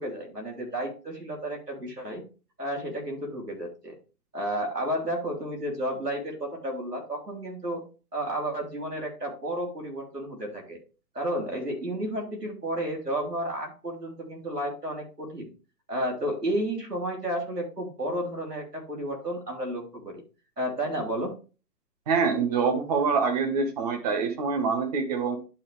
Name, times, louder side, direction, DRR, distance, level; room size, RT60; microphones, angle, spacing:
voice 1, 0.0-2.2 2.6-4.0 4.3-7.8 8.1-10.8 11.1-15.5 15.9-20.2 20.6-21.3, right 1 dB, 75° right, 0 dB, 3.3 m, -32 dB
voice 2, 22.1-25.4, right 5 dB, 25° right, 5 dB, 1.2 m, -25 dB
11.0 x 4.3 x 3.3 m, 0.34 s
figure-of-eight pair, 130°, 47 cm